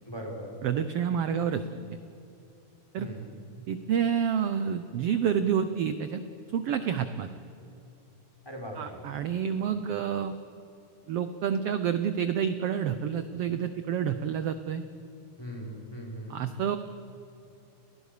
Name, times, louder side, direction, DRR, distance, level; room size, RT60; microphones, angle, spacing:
voice 1, 0.1-0.5 3.0-3.3 8.4-9.0 15.4-16.4, equal, 5° left, 0 dB, 4.3 m, -39 dB
voice 2, 0.6-2.0 2.9-3.1 3.7-6.2 6.5-7.3 8.8-10.3 11.1-14.9 16.3-16.8, right 8 dB, 85° right, 11 dB, 1.3 m, -29 dB
30.0 x 19.5 x 6.7 m, 2.8 s
omnidirectional pair, 3.8 m